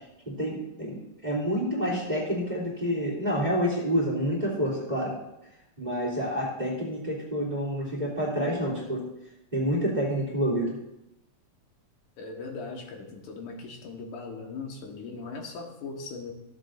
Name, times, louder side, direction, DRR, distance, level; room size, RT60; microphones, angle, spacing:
voice 1, 0.2-5.1 5.8-9.0 9.5-10.7, equal, 15° right, -6 dB, 2.7 m, -28 dB
voice 2, 12.2-16.3, left 4 dB, 90° left, 2 dB, 2.9 m, -39 dB
15.0 x 8.0 x 2.6 m, 0.89 s
omnidirectional pair, 3.5 m